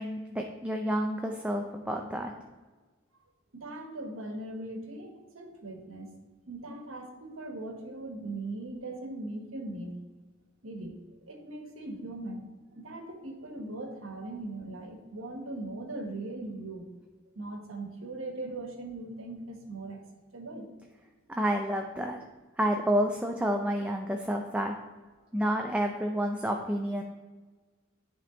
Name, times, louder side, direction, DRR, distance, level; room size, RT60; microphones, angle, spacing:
voice 1, 0.0-2.3 21.3-22.2 22.6-24.8 25.3-27.0, equal, 5° right, 2 dB, 0.4 m, -29 dB
voice 2, 3.5-6.1 6.5-9.9 10.6-11.0 11.3-12.5 12.7-16.9 17.3-20.0 20.3-20.7, right 2 dB, 75° right, 2 dB, 1.3 m, -39 dB
10.5 x 3.6 x 3.8 m, 1.3 s
head